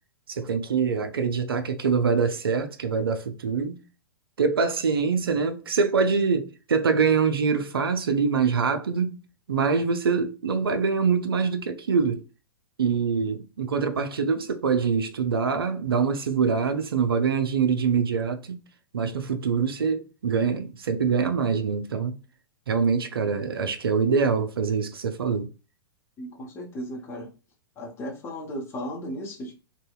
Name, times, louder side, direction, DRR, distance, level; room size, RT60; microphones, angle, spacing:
voice 1, 0.3-3.8 4.4-9.2 9.5-12.2 12.8-18.6 18.9-22.1 22.7-25.5, right 5 dB, 70° right, 0.4 m, -24 dB
voice 2, 26.2-27.3 27.8-29.5, equal, 20° left, 0.7 m, -35 dB
2.7 x 2.1 x 2.3 m
figure-of-eight pair, 105°, 13 cm